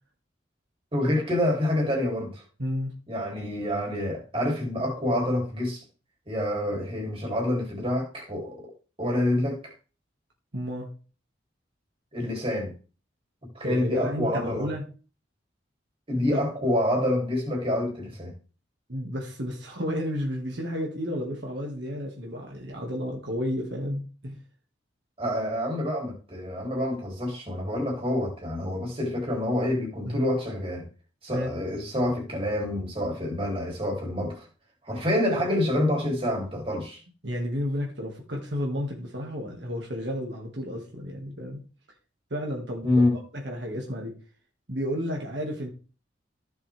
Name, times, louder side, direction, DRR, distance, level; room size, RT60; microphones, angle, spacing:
voice 1, 0.9-2.4 3.1-5.8 6.3-8.7 9.0-9.7 12.1-12.7 13.5-14.7 16.1-18.3 25.2-30.9 31.2-34.5 34.8-37.0 42.8-43.2, left 1 dB, 30° right, 3.4 m, -27 dB
voice 2, 2.6-2.9 10.5-10.9 13.6-14.8 16.3-16.4 18.9-24.4 30.0-30.3 31.3-31.5 37.2-41.6 42.3-44.2 44.7-45.7, equal, 65° right, 2.1 m, -32 dB
14.5 x 7.0 x 3.5 m
head